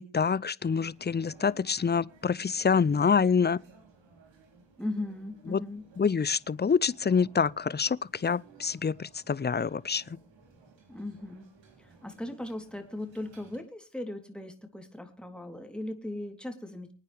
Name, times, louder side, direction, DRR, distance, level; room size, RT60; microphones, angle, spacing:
voice 1, 0.0-3.6 5.5-5.6 6.0-10.0, left 6 dB, 25° left, 0.6 m, -26 dB
sound 1, 0.6-13.6, right 4 dB, 85° right, 3.7 m, -58 dB
voice 2, 4.8-5.8 10.9-11.5 11.8-16.9, left 1 dB, ahead, 3.5 m, -38 dB
24.5 x 9.4 x 3.5 m
cardioid pair, 45°, 43 cm